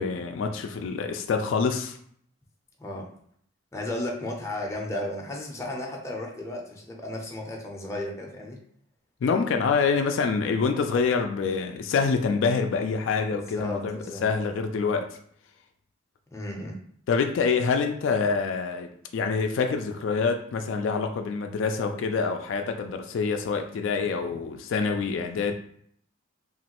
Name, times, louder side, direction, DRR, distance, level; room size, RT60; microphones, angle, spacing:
voice 1, 0.0-2.0 9.2-15.2 17.1-25.5, left 5 dB, 70° left, 5 dB, 0.3 m, -26 dB
voice 2, 2.8-3.1 3.7-8.6 13.3-14.2 16.3-16.8, left 1 dB, 15° left, -1 dB, 0.5 m, -34 dB
3.0 x 2.4 x 2.9 m, 0.64 s
head